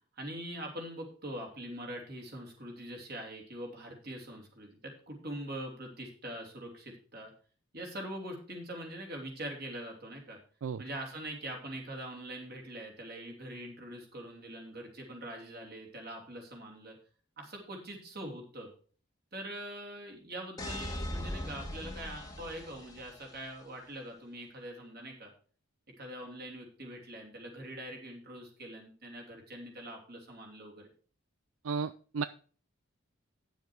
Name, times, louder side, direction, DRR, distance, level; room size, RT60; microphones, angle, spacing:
voice 1, 0.2-7.3 7.7-10.4 10.8-16.9 17.4-18.7 19.3-25.3 26.0-30.9, right 1 dB, 45° right, 1 dB, 2.9 m, -43 dB
sound 1, 20.6-23.4, left 1 dB, 15° left, 1.4 m, -40 dB
voice 2, 31.6-32.2, right 5 dB, 75° right, 13 dB, 0.4 m, -33 dB
10.0 x 7.2 x 4.6 m, 0.42 s
head